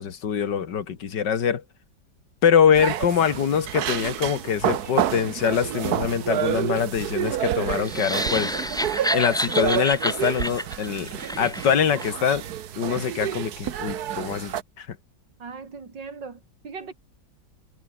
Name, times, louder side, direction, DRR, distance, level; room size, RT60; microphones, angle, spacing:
voice 1, 0.0-1.6 2.4-8.5 9.1-12.4 12.8-15.0, left 7 dB, 75° left, 2.4 m, -24 dB
sound 1, 2.7-14.6, right 10 dB, 65° right, 1.4 m, -29 dB
sound 2, 7.8-12.1, equal, 5° left, 1.0 m, -29 dB
voice 2, 15.4-16.9, right 5 dB, 80° right, 3.7 m, -39 dB
omnidirectional pair, 1.9 m